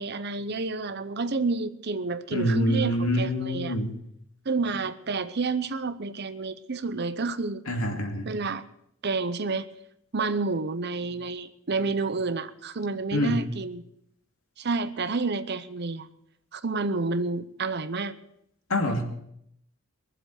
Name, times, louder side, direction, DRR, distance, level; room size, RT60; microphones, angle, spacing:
voice 1, 0.0-3.7 4.4-7.6 8.3-8.6 9.0-9.7 10.1-13.8 14.6-16.1 16.5-18.1, right 3 dB, 55° right, 13 dB, 0.8 m, -29 dB
voice 2, 2.3-3.9 7.7-8.3 13.1-13.4 18.7-19.0, equal, 85° left, 2 dB, 2.4 m, -26 dB
22.0 x 7.6 x 6.5 m, 0.75 s
head